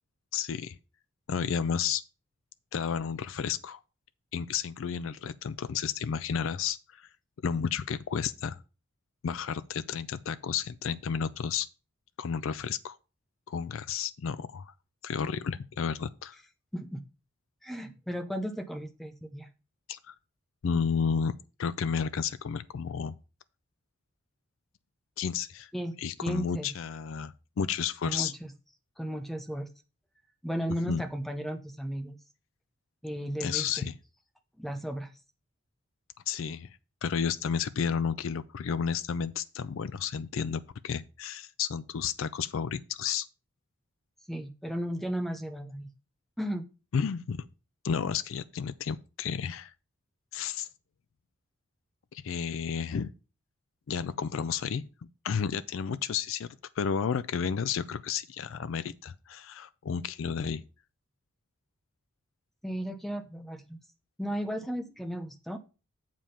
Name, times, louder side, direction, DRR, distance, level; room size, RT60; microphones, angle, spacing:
voice 1, 0.3-0.8 1.3-2.0 2.7-3.8 4.3-7.1 7.4-8.6 9.2-11.7 12.2-13.0 13.5-14.7 15.0-16.4 19.9-20.1 20.6-21.3 21.6-23.1 25.2-25.7 26.0-28.3 30.9-31.0 33.4-33.9 36.3-36.7 37.0-43.3 46.9-47.5 47.8-49.7 50.3-50.7 52.1-53.1 53.9-54.9 55.2-56.5 56.8-60.6, left 7 dB, 70° left, 0.4 m, -32 dB
voice 2, 17.6-19.5 25.7-26.7 28.0-28.5 29.0-29.7 30.4-32.2 33.0-33.9 34.6-35.1 44.3-45.9 46.4-46.7 62.6-63.8 64.2-65.6, equal, ahead, 0.7 m, -35 dB
7.4 x 5.2 x 5.6 m
head